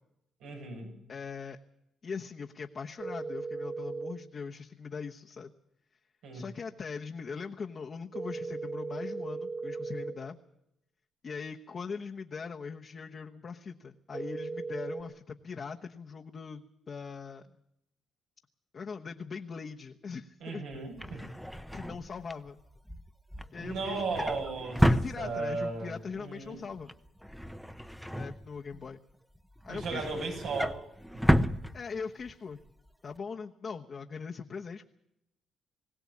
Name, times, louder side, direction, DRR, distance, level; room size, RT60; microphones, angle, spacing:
voice 1, 0.4-0.9 6.2-6.5 20.4-21.3 23.6-26.6 29.7-30.8 31.1-31.2, right 4 dB, 85° right, 1 dB, 7.8 m, -36 dB
voice 2, 1.1-1.6 2.0-5.5 6.3-10.4 11.2-17.4 18.7-20.6 21.1-21.3 21.7-22.6 23.5-24.3 24.8-26.9 28.1-29.0 29.7-30.2 31.7-32.6 33.0-34.8, left 5 dB, 45° left, 1 dB, 1.1 m, -41 dB
sound 1, 3.0-4.1 8.1-10.1 14.1-15.0, right 4 dB, 50° right, 4.2 m, -37 dB
Drawer open or close, 20.7-25.8 26.1-26.5 26.7-28.9 29.4-32.3 32.7-32.9 33.2-33.3, equal, ahead, 0.9 m, -31 dB
21.0 x 17.0 x 8.6 m, 0.81 s
cardioid pair, 90°, 0 cm